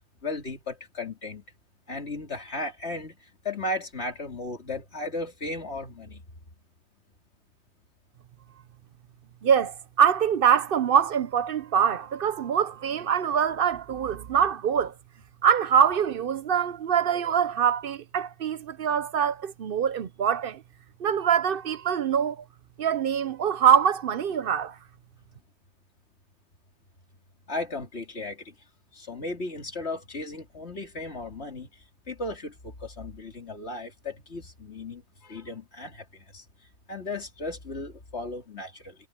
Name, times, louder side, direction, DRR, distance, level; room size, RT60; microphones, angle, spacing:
voice 1, 0.2-1.4 1.9-3.2 3.4-6.2 27.5-28.5 28.9-31.7 32.1-36.0 36.3-36.4 36.9-38.9, left 2 dB, 80° left, 3.2 m, -35 dB
voice 2, 9.4-14.9 15.4-20.6 21.0-22.4 22.8-24.8, right 8 dB, 60° right, 0.8 m, -24 dB
omnidirectional pair, 1.1 m